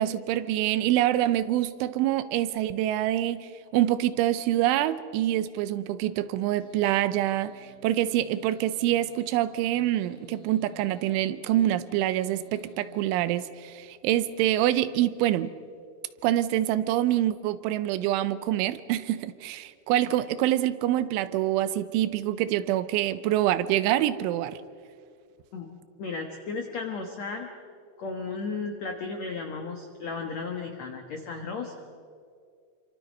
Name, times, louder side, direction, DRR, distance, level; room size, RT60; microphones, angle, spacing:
voice 1, 0.0-15.5 16.2-24.6, right 13 dB, 90° right, 3.2 m, -26 dB
sound 1, 6.6-14.0, right 1 dB, 35° left, 2.8 m, -53 dB
voice 2, 25.5-27.5 28.0-31.7, left 4 dB, 80° left, 1.5 m, -34 dB
27.0 x 25.5 x 5.3 m
omnidirectional pair, 5.4 m